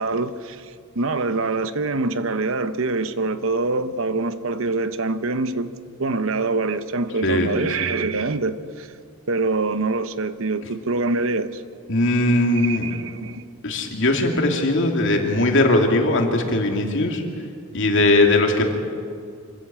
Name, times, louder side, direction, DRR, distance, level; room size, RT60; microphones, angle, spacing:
voice 1, 0.0-8.9 9.3-11.6 12.5-13.5, right 3 dB, 70° right, 1.0 m, -25 dB
voice 2, 7.2-7.7 11.9-12.9 13.6-17.2 17.7-18.7, left 2 dB, 60° left, 2.7 m, -19 dB
25.0 x 14.0 x 8.8 m
head